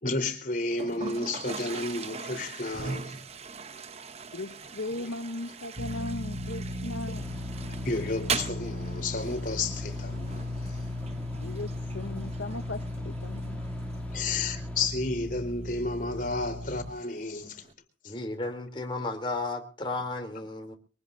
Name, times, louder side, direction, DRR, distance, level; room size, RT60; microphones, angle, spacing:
voice 1, 0.0-3.2 7.1-7.2 7.7-10.8 14.1-17.7 18.0-18.1, left 3 dB, 45° left, 3.8 m, -32 dB
Toilet flush, 0.7-17.7, right 5 dB, 35° right, 0.8 m, -41 dB
voice 2, 4.3-7.2 11.4-13.6, left 2 dB, 85° left, 0.9 m, -37 dB
sound 1, 5.7-16.9, left 1 dB, 55° right, 2.8 m, -36 dB
sound 2, 7.2-14.9, equal, 10° left, 2.6 m, -47 dB
voice 3, 18.0-20.7, left 2 dB, 25° left, 3.1 m, -33 dB
24.0 x 19.0 x 2.6 m
head